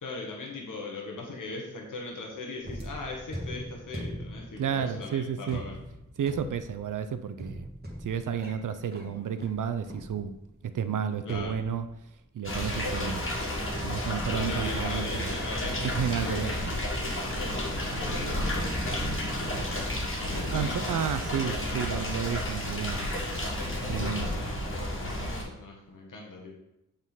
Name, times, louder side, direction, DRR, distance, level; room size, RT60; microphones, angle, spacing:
voice 1, 0.0-5.8 11.2-11.6 14.3-19.0 19.4-19.6 20.2-21.8 23.6-24.9 25.1-26.5, left 2 dB, 85° left, 0 dB, 1.2 m, -40 dB
sound 1, 2.6-10.6 11.3-12.3 13.7-15.0 15.3-15.7, equal, 30° right, 1.6 m, -42 dB
voice 2, 4.6-5.6 6.2-7.7 8.0-10.3 10.7-11.9 12.3-13.2 13.8-15.3 15.8-16.5 20.5-23.0 23.9-24.3, right 7 dB, 80° right, 10 dB, 0.6 m, -31 dB
sound 2, 12.4-25.4, left 1 dB, 40° left, 1.6 m, -31 dB
7.1 x 3.8 x 4.0 m, 0.88 s
wide cardioid pair, 70°, 31 cm